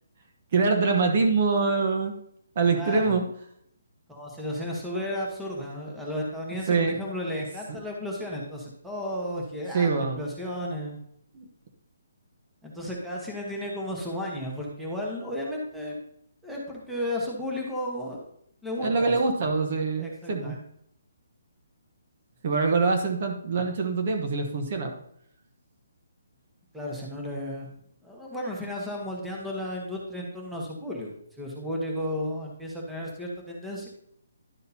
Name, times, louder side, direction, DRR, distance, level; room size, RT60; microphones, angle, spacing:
voice 1, 0.5-2.1 2.6-3.2 6.7-7.0 9.7-10.2 11.3-11.4 18.8-20.6 22.4-24.9, right 4 dB, 40° right, 4 dB, 1.1 m, -24 dB
voice 2, 2.7-3.2 4.1-11.0 12.6-16.0 16.4-18.3 18.6-19.2 20.0-20.6 26.7-27.8 28.0-33.9, left 1 dB, ahead, -3 dB, 1.2 m, -33 dB
11.0 x 6.4 x 2.8 m, 0.69 s
hypercardioid pair, 165°, 0 cm